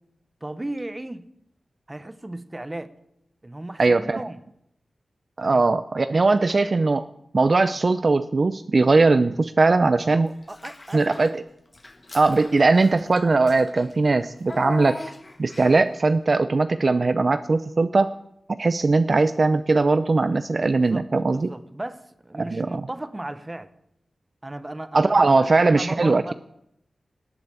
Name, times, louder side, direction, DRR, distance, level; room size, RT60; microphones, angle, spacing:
voice 1, 0.4-1.3 1.9-2.9 3.4-4.4 5.4-5.7 10.1-11.2 20.7-23.7 24.4-26.3, right 1 dB, 20° right, 1.0 m, -36 dB
voice 2, 3.8-4.2 5.4-7.0 7.3-10.3 10.9-11.3 12.1-15.0 15.4-18.1 18.5-21.5 22.4-22.8 24.9-26.2, right 3 dB, 45° right, 0.5 m, -20 dB
Child speech kid speaking / Bathtub (filling or washing), 10.4-11.4 11.7-16.0, left 2 dB, 25° left, 1.6 m, -39 dB
18.0 x 8.0 x 8.8 m
wide cardioid pair, 100°, 0 cm